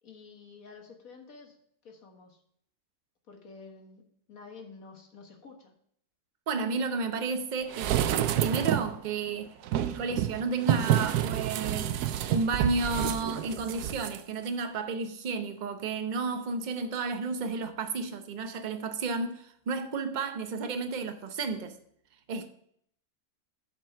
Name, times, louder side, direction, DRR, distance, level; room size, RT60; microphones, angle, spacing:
voice 1, 0.0-1.6 1.8-2.4 3.3-4.0 4.3-5.7, left 4 dB, 65° left, 1.8 m, -50 dB
voice 2, 6.5-21.8 22.3-22.5, right 4 dB, 45° right, 0.6 m, -32 dB
sound 1, 7.7-9.0 9.6-14.2 14.5-14.6, right 11 dB, 90° right, 1.1 m, -28 dB
7.5 x 5.3 x 5.7 m
omnidirectional pair, 1.6 m